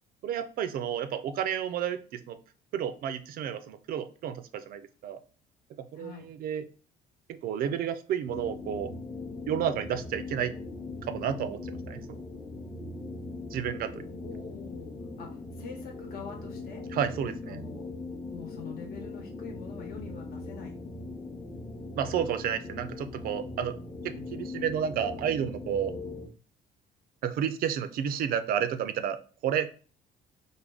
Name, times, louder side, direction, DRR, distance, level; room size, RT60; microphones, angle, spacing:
voice 1, 0.2-2.4 2.7-5.2 5.8-6.7 7.3-8.9 9.5-10.5 11.1-12.2 13.5-14.0 16.9-17.6 22.0-23.8 24.0-25.9 27.2-29.7, right 9 dB, 60° right, 11 dB, 0.4 m, -31 dB
voice 2, 5.9-6.3 14.2-16.9 17.5-17.9 18.3-20.8, left 6 dB, 65° left, 2 dB, 1.1 m, -45 dB
sound 1, 8.3-26.3, left 3 dB, 20° left, 0.7 m, -40 dB
3.3 x 2.2 x 3.5 m, 0.38 s
cardioid pair, 110°, 17 cm